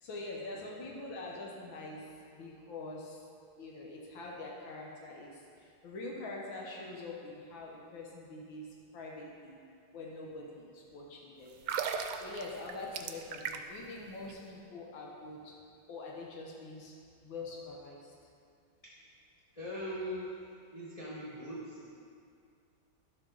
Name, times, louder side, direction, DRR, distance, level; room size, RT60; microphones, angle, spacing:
voice 1, 0.0-3.2 3.6-8.7 8.9-9.6 9.9-11.6 12.1-15.5 15.9-16.9 17.2-18.1, left 2 dB, 80° left, -2 dB, 1.7 m, -44 dB
sound 1, 11.5-13.9 14.1-14.3, right 7 dB, 75° right, 1.2 m, -37 dB
voice 2, 19.5-21.9, equal, 20° left, -7 dB, 1.1 m, -41 dB
11.5 x 7.4 x 3.8 m, 2.3 s
omnidirectional pair, 2.1 m